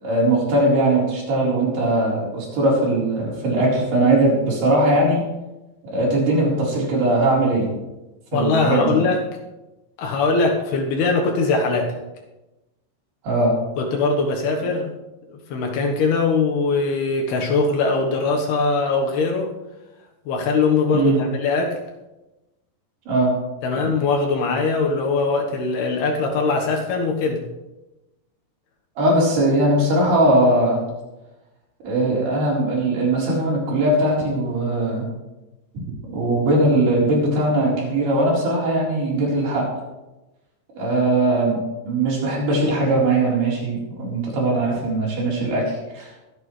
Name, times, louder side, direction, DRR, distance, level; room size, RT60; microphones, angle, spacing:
voice 1, 0.0-5.2 5.9-7.7 8.3-9.0 13.2-13.6 20.9-21.2 23.1-23.3 29.0-30.8 31.8-35.1 35.7-35.8 36.1-39.7 40.8-41.6 41.9-46.1, right 1 dB, 65° right, -5 dB, 6.0 m, -20 dB
voice 2, 8.3-9.2 10.0-12.0 13.8-14.9 15.3-19.5 20.3-21.8 23.6-27.4, left 4 dB, 70° left, 1 dB, 3.2 m, -21 dB
23.5 x 8.8 x 3.3 m, 1.0 s
omnidirectional pair, 5.0 m